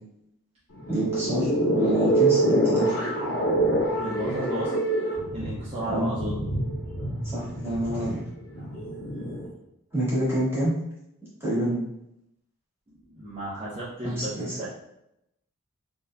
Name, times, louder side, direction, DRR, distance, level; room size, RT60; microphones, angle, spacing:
sound 1, 0.7-9.5, right 1 dB, 80° left, 1.2 m, -26 dB
voice 1, 0.9-3.1 5.9-6.1 7.2-8.2 9.9-10.7 11.4-11.8 14.0-14.6, right 1 dB, 10° right, -9 dB, 1.4 m, -27 dB
voice 2, 3.9-4.8 5.3-6.4 8.6-8.9 13.1-14.2 14.6-14.7, right 1 dB, 25° right, -10 dB, 0.7 m, -34 dB
3.7 x 2.9 x 2.2 m, 0.82 s
head